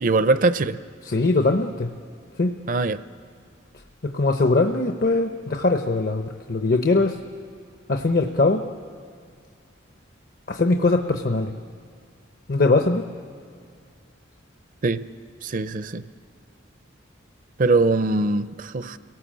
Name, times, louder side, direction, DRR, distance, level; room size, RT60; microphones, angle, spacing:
voice 1, 0.0-0.8 2.7-3.0 14.8-15.0 15.4-16.0 17.6-19.0, right 3 dB, 45° right, 13 dB, 0.6 m, -21 dB
voice 2, 1.0-1.9 2.4-2.5 4.0-7.2 7.9-8.6 10.5-11.5 12.5-13.1, left 3 dB, 55° left, 6 dB, 0.8 m, -21 dB
29.5 x 18.0 x 7.5 m, 2.2 s
head